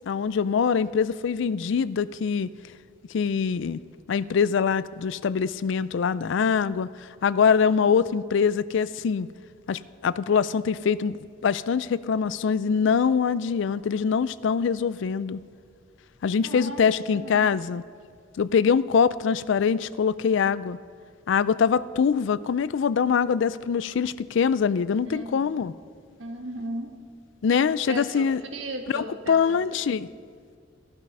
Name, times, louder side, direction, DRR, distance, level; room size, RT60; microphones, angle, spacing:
voice 1, 0.1-2.5 3.1-3.8 4.1-6.9 7.2-9.3 9.7-11.2 11.4-15.4 16.2-17.8 18.4-20.8 21.3-25.7 27.4-28.4 28.9-30.1, left 6 dB, 65° left, 17 dB, 0.4 m, -23 dB
voice 2, 16.4-16.8 17.1-17.5 25.0-25.5 26.2-26.9 27.9-29.6, right 1 dB, 80° right, 4 dB, 1.6 m, -36 dB
16.0 x 11.5 x 5.4 m, 2.1 s
head